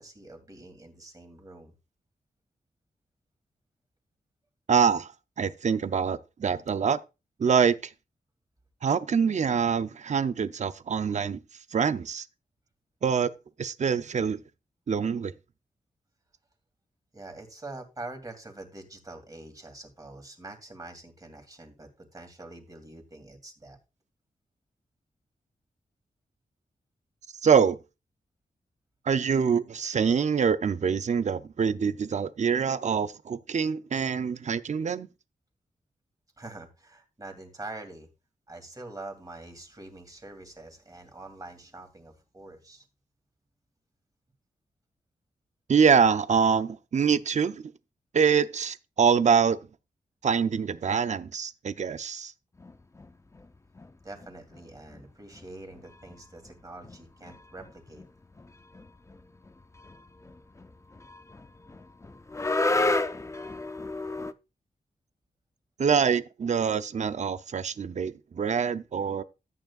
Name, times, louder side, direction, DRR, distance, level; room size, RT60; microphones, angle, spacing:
voice 1, 0.0-1.7 17.1-23.8 36.4-38.1 38.5-42.8 54.0-58.0, right 2 dB, 20° right, 2.6 m, -45 dB
voice 2, 4.7-5.1 5.4-7.0 7.4-7.7 8.8-11.4 11.7-12.2 13.0-13.3 13.6-14.4 14.9-15.3 27.4-27.8 29.1-35.1 45.7-47.6 48.1-49.6 50.2-52.3 65.8-69.2, right 6 dB, 45° right, 0.6 m, -25 dB
sound 1, 52.6-53.5 53.8-54.6 54.9-55.1 55.3-55.4 55.7-64.3, left 2 dB, 20° left, 0.6 m, -32 dB
13.5 x 9.0 x 2.4 m
wide cardioid pair, 130°, 16 cm